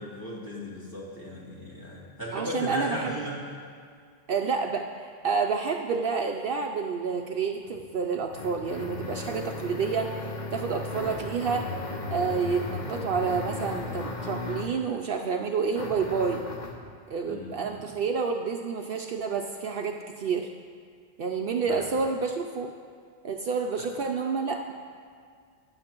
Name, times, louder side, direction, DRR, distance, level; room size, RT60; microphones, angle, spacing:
voice 1, 0.0-3.4 17.3-17.8 21.7-21.8 23.8-23.9, equal, 20° left, -7 dB, 2.5 m, -36 dB
voice 2, 2.3-3.1 4.3-11.7 12.1-16.4 17.1-20.5 21.2-22.7 23.2-24.7, right 5 dB, 65° right, 2 dB, 0.7 m, -29 dB
sound 1, 7.6-14.8 15.7-16.9, left 3 dB, 45° left, 1.0 m, -36 dB
18.5 x 9.7 x 3.0 m, 2.1 s
omnidirectional pair, 1.1 m